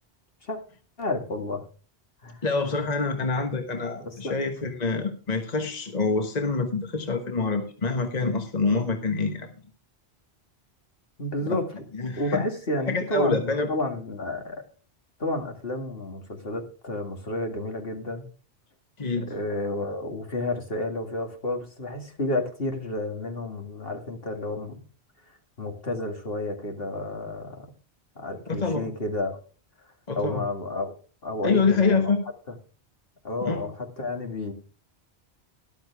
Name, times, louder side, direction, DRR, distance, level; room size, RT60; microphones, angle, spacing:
voice 1, 1.0-1.6 2.2-2.4 3.7-4.3 11.2-11.7 12.1-14.6 15.2-18.3 19.2-24.8 25.6-27.7 28.2-29.4 30.2-30.9 31.2-32.1 33.2-34.5, left 2 dB, 60° left, 3 dB, 2.4 m, -31 dB
voice 2, 2.4-9.5 11.4-11.6 11.9-12.4 12.9-13.7 19.0-19.3 28.5-28.9 30.1-30.4 31.4-32.2 33.4-33.7, left 4 dB, 40° left, 5 dB, 1.4 m, -26 dB
13.5 x 12.0 x 3.5 m, 0.37 s
omnidirectional pair, 1.1 m